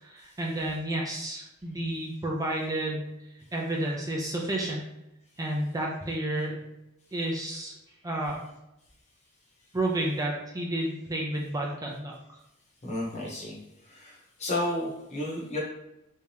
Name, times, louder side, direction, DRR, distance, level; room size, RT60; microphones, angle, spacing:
voice 1, 0.0-4.9 5.4-6.6 7.1-7.7 8.0-8.4 9.7-12.4, right 1 dB, 15° right, -1 dB, 0.5 m, -31 dB
voice 2, 12.8-13.6 13.9-15.6, left 1 dB, 30° left, -2 dB, 0.9 m, -32 dB
3.4 x 2.7 x 3.3 m, 0.90 s
head